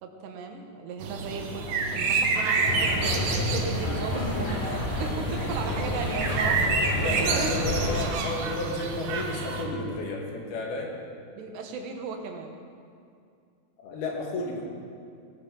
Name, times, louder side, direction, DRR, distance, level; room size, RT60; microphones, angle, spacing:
voice 1, 0.0-7.7 11.3-12.6, right 4 dB, 85° right, 4 dB, 3.3 m, -36 dB
sound 1, 1.0-9.6, right 4 dB, 65° right, 2.0 m, -29 dB
sound 2, 2.6-8.1, left 1 dB, 40° left, 2.4 m, -29 dB
voice 2, 6.9-10.9 13.8-14.7, left 2 dB, 70° left, -1 dB, 3.6 m, -32 dB
18.0 x 12.5 x 3.9 m, 2.4 s
omnidirectional pair, 4.7 m